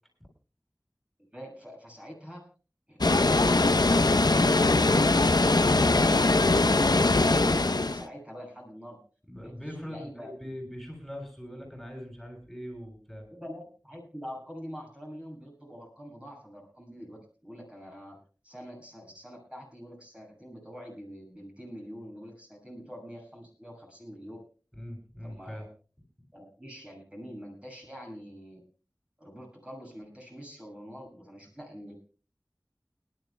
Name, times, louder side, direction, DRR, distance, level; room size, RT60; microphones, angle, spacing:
voice 1, 1.3-2.5 4.8-9.0 9.4-10.3 13.3-18.2 18.4-24.4 25.2-25.7 26.3-28.6 29.2-31.9, equal, 15° right, -2 dB, 7.0 m, -45 dB
Water, 3.0-8.0, left 2 dB, 80° left, 0.8 m, -22 dB
voice 2, 9.3-13.3 24.7-25.7, equal, ahead, 1 dB, 7.2 m, -41 dB
29.5 x 12.0 x 2.3 m, 0.36 s
wide cardioid pair, 40°, 7 cm